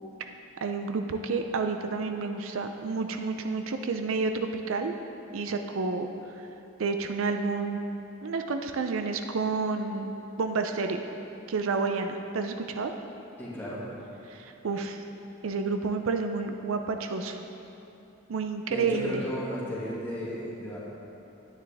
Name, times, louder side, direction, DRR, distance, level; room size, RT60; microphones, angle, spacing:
voice 1, 0.6-4.9 5.3-6.1 6.8-7.8 8.2-10.1 10.4-11.0 11.5-12.9 14.3-15.0 15.4-17.4 18.3-19.2, right 4 dB, 75° right, 6 dB, 0.5 m, -30 dB
voice 2, 13.4-13.8 18.7-20.8, equal, 10° left, -9 dB, 2.0 m, -34 dB
9.8 x 9.2 x 3.5 m, 2.9 s
head